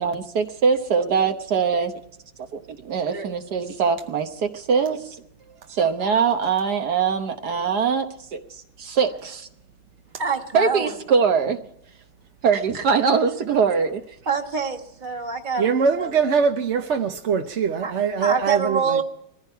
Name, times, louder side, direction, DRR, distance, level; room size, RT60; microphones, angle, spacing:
voice 1, 0.0-1.9 2.5-5.2 5.7-9.5 10.5-11.6 12.4-14.0, right 6 dB, 70° right, 1.6 m, -22 dB
voice 2, 10.2-11.0 14.3-16.2 17.8-17.9 18.2-19.0, right 5 dB, 30° right, 1.7 m, -26 dB
voice 3, 15.6-19.0, right 6 dB, 55° right, 0.9 m, -22 dB
20.0 x 15.0 x 4.5 m
omnidirectional pair, 1.8 m